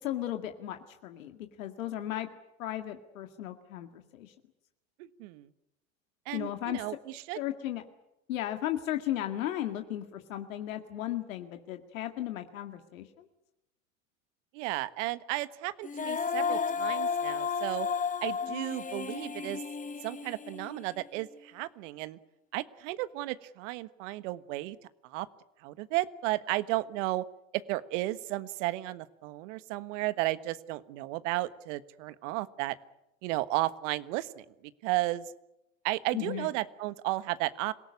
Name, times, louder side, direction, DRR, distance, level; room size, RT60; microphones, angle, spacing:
voice 1, 0.0-2.3 2.6-4.3 6.3-6.8 7.4-7.8 8.3-13.3 36.1-36.5, left 13 dB, 75° left, 6 dB, 2.1 m, -35 dB
voice 2, 5.0-5.5 6.3-6.9 7.3-7.4 14.5-17.9 18.2-19.6 20.0-22.2 22.5-24.8 25.0-25.3 25.6-27.2 27.7-32.7 33.2-34.4 34.8-35.3 35.8-37.7, right 18 dB, 65° right, 15 dB, 1.4 m, -33 dB
Female singing, 15.8-21.0, left 5 dB, 20° left, 1.4 m, -33 dB
27.0 x 18.0 x 9.7 m, 0.89 s
hypercardioid pair, 90°, 40 cm